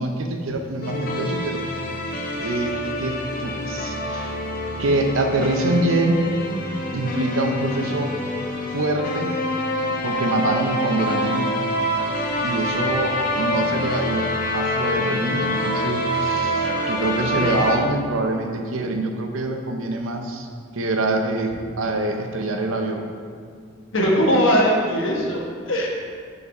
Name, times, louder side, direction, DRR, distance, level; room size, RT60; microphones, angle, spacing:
voice 1, 0.0-1.6 2.3-4.4 4.8-6.2 6.9-8.1 8.7-9.3 10.0-11.6 12.4-20.5 20.7-23.1, right 2 dB, 90° right, 4 dB, 0.7 m, -25 dB
sound 1, 0.8-17.8, equal, 45° left, 0.6 m, -26 dB
voice 2, 23.9-25.9, equal, 75° left, -2 dB, 1.2 m, -20 dB
5.6 x 4.1 x 5.3 m, 2.1 s
head